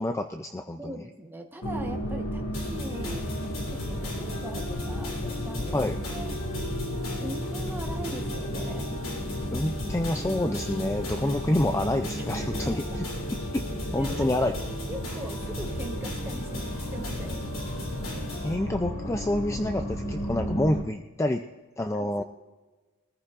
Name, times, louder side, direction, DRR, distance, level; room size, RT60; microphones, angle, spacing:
voice 1, 0.0-1.0 5.7-6.0 9.5-13.0 13.5-13.6 13.9-14.5 18.4-21.4 21.8-22.2, left 1 dB, 15° left, 6 dB, 0.3 m, -28 dB
voice 2, 0.8-5.8 6.1-6.4 7.2-8.9 12.4-13.0 14.0-14.5 14.9-17.5 21.9-22.2, right 1 dB, 10° right, 3 dB, 1.0 m, -41 dB
sound 1, 1.6-20.8, equal, 85° left, 1.8 m, -34 dB
sound 2, 2.5-18.5, left 1 dB, 65° left, 3.3 m, -37 dB
22.0 x 14.5 x 2.5 m, 1.3 s
head